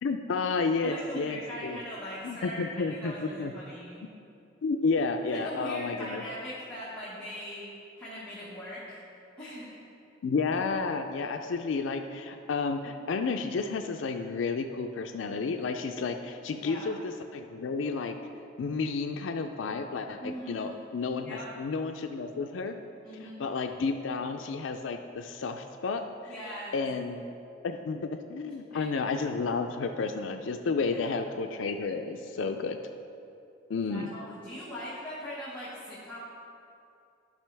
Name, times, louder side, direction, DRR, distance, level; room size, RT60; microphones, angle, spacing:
voice 1, 0.0-1.8 2.2-3.5 4.6-6.2 10.2-18.1 18.6-22.8 23.2-26.3 26.7-27.2 27.6-32.8 33.7-34.1, left 4 dB, 85° left, 6 dB, 0.4 m, -31 dB
voice 2, 0.8-4.0 5.3-7.6 8.0-9.0 9.4-9.7 16.5-16.9 20.2-20.9 21.2-21.5 23.0-23.4 26.2-26.8 28.7-28.9 30.9-31.2 32.4-32.6 33.8-36.2, equal, 10° left, -10 dB, 1.4 m, -41 dB
12.0 x 5.5 x 3.4 m, 2.6 s
head